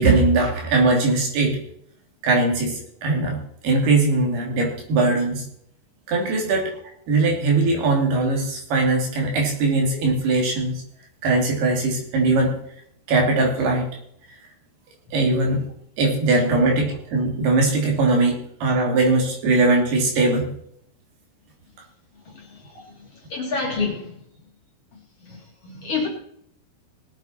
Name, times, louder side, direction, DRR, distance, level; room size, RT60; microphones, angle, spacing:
voice 1, 0.0-1.6 2.2-5.4 6.1-6.7 7.1-10.8 11.2-12.5 13.1-13.9 15.1-15.7 16.0-20.5, right 3 dB, 70° right, 1 dB, 4.6 m, -20 dB
voice 2, 22.2-24.2 24.9-26.1, left 4 dB, 40° left, 0 dB, 2.9 m, -30 dB
19.5 x 8.1 x 4.3 m, 0.68 s
omnidirectional pair, 4.8 m